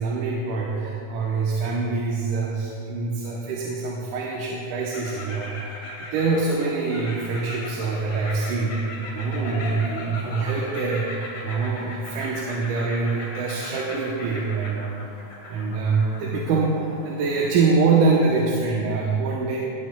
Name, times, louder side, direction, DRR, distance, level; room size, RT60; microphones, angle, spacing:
voice 1, 0.0-5.7 6.0-8.8 9.1-15.2 15.5-19.6, right 4 dB, 85° right, -3 dB, 2.4 m, -25 dB
sound 1, 4.9-17.5, left 2 dB, 60° left, 2.3 m, -38 dB
18.0 x 8.5 x 2.2 m, 2.5 s
omnidirectional pair, 3.6 m